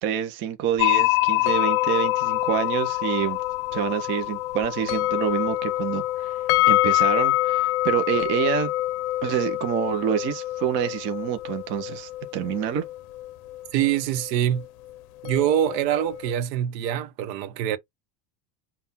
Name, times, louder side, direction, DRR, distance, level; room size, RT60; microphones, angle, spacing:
voice 1, 0.0-3.4 3.7-8.7 9.2-12.9, right 9 dB, 25° right, 0.5 m, -27 dB
sound 1, 0.8-14.0 14.2-14.3 15.3-16.3, left 18 dB, 60° left, 0.7 m, -25 dB
voice 2, 13.7-14.6 15.2-17.8, right 11 dB, 75° right, 0.9 m, -24 dB
5.6 x 2.3 x 4.1 m
cardioid pair, 175°, 50 cm